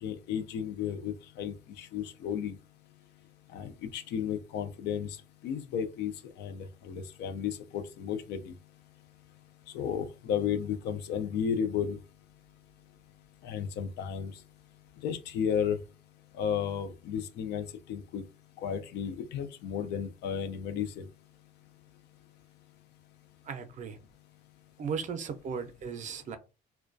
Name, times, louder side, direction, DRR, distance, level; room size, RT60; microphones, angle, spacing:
voice 1, 0.0-2.6 3.5-5.2 5.4-6.1 6.4-8.5 9.7-12.0 13.4-14.3 15.0-15.8 16.4-18.2 18.6-21.1, left 8 dB, 80° left, 0.4 m, -33 dB
voice 2, 23.5-24.0 24.8-26.4, right 6 dB, 45° right, 0.5 m, -36 dB
2.3 x 2.2 x 2.5 m
cardioid pair, 110°, 17 cm